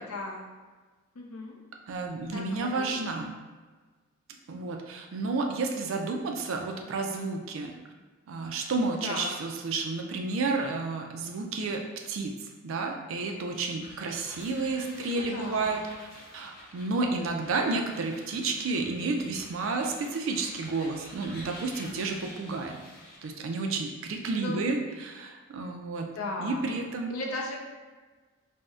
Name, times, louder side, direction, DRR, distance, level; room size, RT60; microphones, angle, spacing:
voice 1, 0.1-0.5 1.1-1.6 2.2-3.0 9.0-9.4 14.8-15.8 24.3-24.6 26.2-26.7 27.1-27.6, left 2 dB, 85° left, 0 dB, 0.5 m, -37 dB
voice 2, 1.9-3.3 4.5-7.7 8.3-15.8 16.3-22.8 23.2-26.1 26.4-27.1, right 3 dB, 65° right, 3 dB, 0.4 m, -31 dB
sound 1, 13.3-23.4, left 1 dB, 45° left, 0.6 m, -49 dB
2.6 x 2.0 x 3.4 m, 1.3 s
head